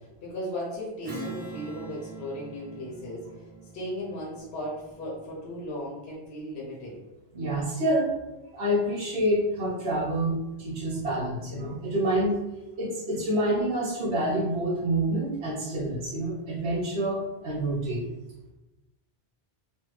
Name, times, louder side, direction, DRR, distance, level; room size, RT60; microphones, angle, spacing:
voice 1, 0.0-3.3 3.7-7.0, equal, 70° left, -5 dB, 0.9 m, -36 dB
Strum, 1.0-5.9, right 2 dB, 30° right, 0.5 m, -43 dB
voice 2, 7.3-8.2 8.5-12.4 12.8-18.1, right 1 dB, 75° right, -7 dB, 0.9 m, -27 dB
3.2 x 2.1 x 3.1 m, 1.0 s
omnidirectional pair, 1.1 m